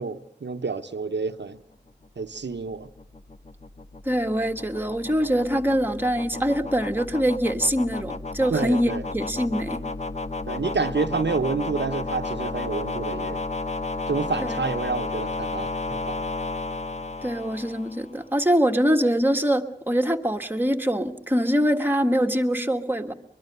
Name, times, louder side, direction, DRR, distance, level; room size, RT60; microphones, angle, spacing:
voice 1, 0.0-1.6 2.2-2.9 8.5-9.0 10.5-13.4 14.1-16.3, right 4 dB, 80° right, 0.9 m, -29 dB
sound 1, 2.0-18.2, left 3 dB, 40° left, 1.1 m, -33 dB
voice 2, 4.0-9.8 14.4-14.7 17.2-23.1, equal, 10° right, 1.6 m, -24 dB
23.5 x 22.5 x 6.7 m
wide cardioid pair, 70°, 18 cm